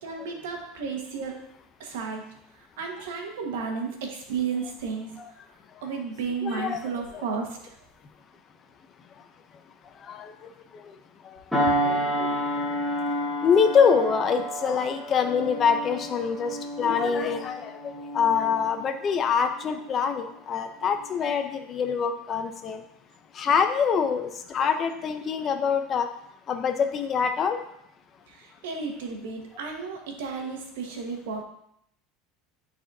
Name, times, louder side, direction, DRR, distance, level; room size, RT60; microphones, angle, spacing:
voice 1, 0.0-1.4 1.8-2.2 2.5-5.1 5.8-7.7 28.3-31.4, right 5 dB, 90° right, 2 dB, 1.4 m, -33 dB
voice 2, 6.4-6.8 7.1-7.2 10.1-10.3 11.8-12.4 13.4-22.8 23.3-26.1 26.5-27.6, left 6 dB, 30° left, 7 dB, 0.6 m, -25 dB
sound 1, 11.5-20.4 20.8-21.1, equal, 5° left, 1.5 m, -30 dB
11.0 x 4.2 x 2.7 m, 0.76 s
supercardioid pair, 145°, 0 cm